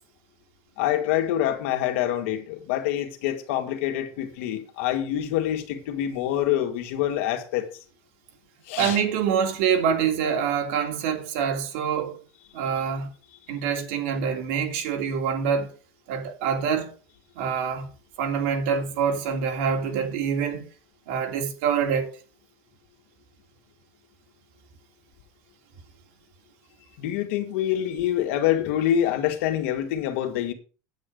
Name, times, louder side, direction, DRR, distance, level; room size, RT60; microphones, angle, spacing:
voice 1, 0.8-7.7 8.7-9.0 27.0-30.5, left 11 dB, 75° left, 2.1 m, -26 dB
voice 2, 8.8-12.2 12.5-13.1 13.5-15.7 16.1-16.9 17.4-17.9 18.2-20.7 21.1-22.1, right 7 dB, 75° right, 2.9 m, -25 dB
9.4 x 8.9 x 5.2 m
cardioid pair, 175°, 7 cm